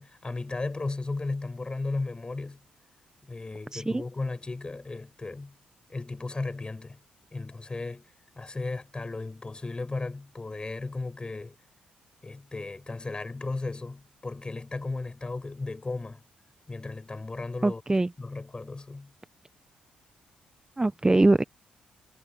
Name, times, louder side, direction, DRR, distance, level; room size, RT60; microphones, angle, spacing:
voice 1, 0.0-2.6 3.2-5.5 5.9-7.0 7.3-11.6 12.2-16.2 16.7-17.8 18.2-19.1, left 3 dB, 25° left, 6.2 m, -35 dB
voice 2, 3.7-4.0 17.6-18.1 20.8-21.4, right 2 dB, 20° right, 1.0 m, -22 dB
hypercardioid pair, 45°, 3 cm